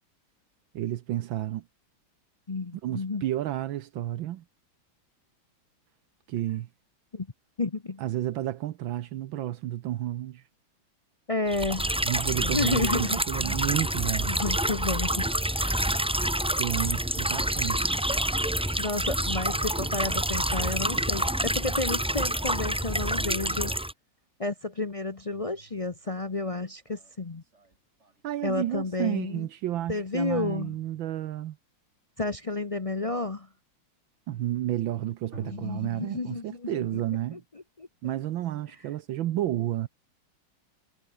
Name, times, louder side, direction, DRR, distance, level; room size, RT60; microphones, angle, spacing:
voice 1, 0.7-1.6 2.8-4.4 6.3-6.7 8.0-10.4 12.0-14.3 16.6-17.9 20.6-20.7 28.2-31.6 34.3-37.4 38.0-39.9, right 13 dB, 75° right, 1.6 m, -31 dB
voice 2, 2.5-3.2 7.1-7.3 7.6-8.0 11.3-11.9 12.4-13.2 14.3-15.9 18.8-23.7 24.4-27.4 28.4-29.5 29.9-30.8 32.2-33.5 35.4-37.0 37.3-37.4 37.8-38.1, left 3 dB, 45° left, 0.4 m, -31 dB
sound 1, 11.5-23.9, right 1 dB, 5° right, 0.5 m, -27 dB
sound 2, 23.9-24.0 24.9-28.6 30.3-31.4 35.3-36.0, right 3 dB, 35° right, 3.3 m, -49 dB
omnidirectional pair, 2.2 m